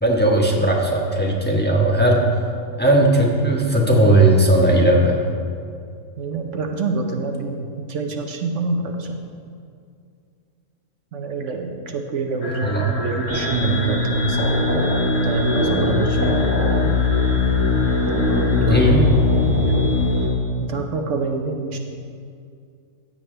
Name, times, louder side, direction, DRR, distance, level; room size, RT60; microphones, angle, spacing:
voice 1, 0.0-2.2 2.8-5.2 12.6-12.8 18.7-19.1, right 1 dB, 10° left, -2 dB, 1.2 m, -17 dB
voice 2, 6.2-9.2 11.1-14.7 15.2-16.4 18.3-18.9 19.6-20.0 20.6-21.8, right 4 dB, 70° right, 3 dB, 1.2 m, -26 dB
sound 1, 12.4-18.8, left 2 dB, 55° left, 1.5 m, -34 dB
sound 2, 13.3-20.3, left 3 dB, 10° right, 1.9 m, -20 dB
15.0 x 8.7 x 3.4 m, 2.3 s
omnidirectional pair, 1.4 m